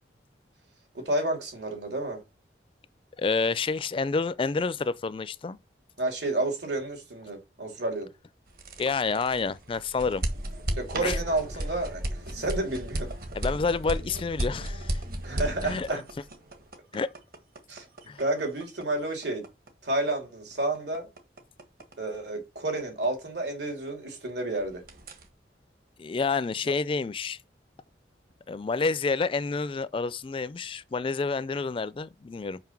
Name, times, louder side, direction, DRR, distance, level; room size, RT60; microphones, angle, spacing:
voice 1, 0.9-2.2 6.0-8.1 10.8-13.1 15.2-16.0 17.7-17.8 18.2-19.4 19.8-21.1 22.0-24.8 26.6-26.7, right 2 dB, 75° right, 3.0 m, -30 dB
voice 2, 3.2-5.6 8.8-10.2 11.0-11.2 13.3-15.0 15.6-16.0 16.9-17.1 18.1-18.2 26.0-27.4 28.5-32.6, left 4 dB, 30° left, 0.3 m, -29 dB
sound 1, 8.5-24.3 24.6-25.3, right 1 dB, 55° right, 1.5 m, -35 dB
5.8 x 5.4 x 5.9 m
head